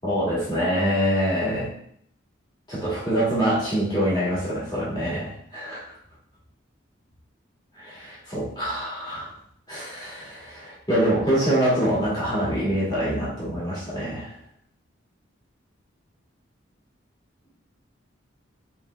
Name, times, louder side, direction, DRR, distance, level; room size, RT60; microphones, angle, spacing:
voice 1, 0.0-1.7 2.7-5.8 7.8-9.3 9.7-14.3, equal, 20° left, -8 dB, 1.9 m, -25 dB
4.2 x 3.7 x 3.3 m, 0.66 s
head